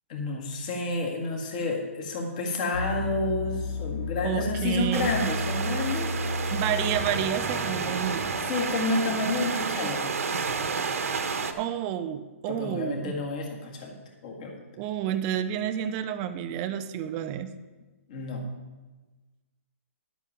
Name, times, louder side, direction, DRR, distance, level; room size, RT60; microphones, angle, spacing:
voice 1, 0.1-6.5 8.5-10.0 12.5-14.0 14.2-14.5 18.1-18.5, left 2 dB, 30° left, 1 dB, 1.8 m, -30 dB
sound 1, 2.7-7.9, left 2 dB, 50° left, 1.4 m, -32 dB
voice 2, 4.2-5.1 6.5-8.4 11.6-13.1 14.8-17.5, right 10 dB, 15° right, 10 dB, 0.4 m, -30 dB
sound 2, 4.9-11.5, right 5 dB, 75° right, 1.2 m, -30 dB
11.5 x 8.2 x 5.7 m, 1.2 s
hypercardioid pair, 175°, 8 cm